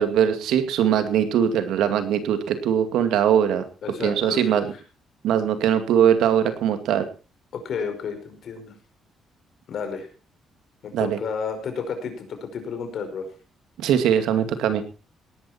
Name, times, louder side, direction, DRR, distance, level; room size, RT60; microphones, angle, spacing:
voice 1, 0.0-3.6 4.0-4.7 5.2-7.1 10.9-11.2 13.8-14.8, right 9 dB, 85° right, 9 dB, 2.3 m, -21 dB
voice 2, 3.8-4.6 7.5-8.7 9.7-10.1 10.8-13.3, left 6 dB, 65° left, 6 dB, 5.2 m, -31 dB
18.5 x 11.5 x 4.4 m, 0.34 s
cardioid pair, 90°, 0 cm